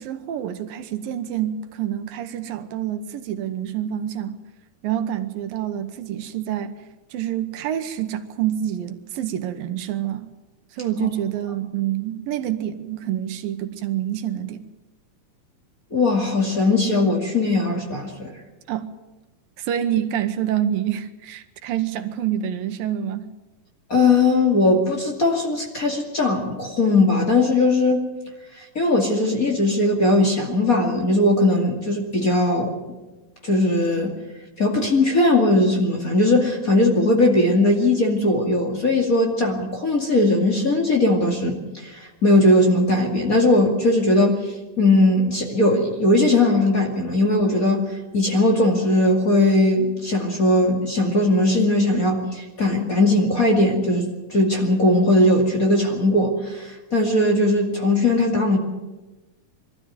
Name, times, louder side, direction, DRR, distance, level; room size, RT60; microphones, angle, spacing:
voice 1, 0.0-4.4 4.8-6.7 7.1-10.3 10.7-14.6 18.7-18.9 19.6-23.3, right 11 dB, 80° right, 9 dB, 2.8 m, -27 dB
voice 2, 15.9-18.3 23.9-28.1 28.6-32.7 33.4-34.1 34.6-58.6, left 2 dB, 30° left, 1 dB, 2.3 m, -19 dB
22.5 x 14.0 x 9.4 m, 1.1 s
omnidirectional pair, 4.0 m